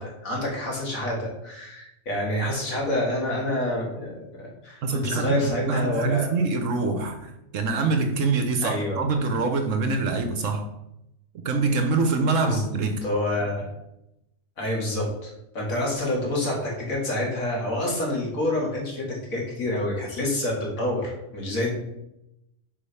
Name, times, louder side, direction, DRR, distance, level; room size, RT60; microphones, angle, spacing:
voice 1, 0.0-6.4 8.6-9.0 12.4-12.6 13.0-13.7 14.6-21.7, left 1 dB, 85° left, -2 dB, 2.4 m, -28 dB
voice 2, 4.8-5.4 5.7-10.7 11.4-13.0, right 4 dB, 70° right, 6 dB, 1.2 m, -25 dB
5.4 x 5.1 x 5.6 m, 0.86 s
omnidirectional pair, 1.4 m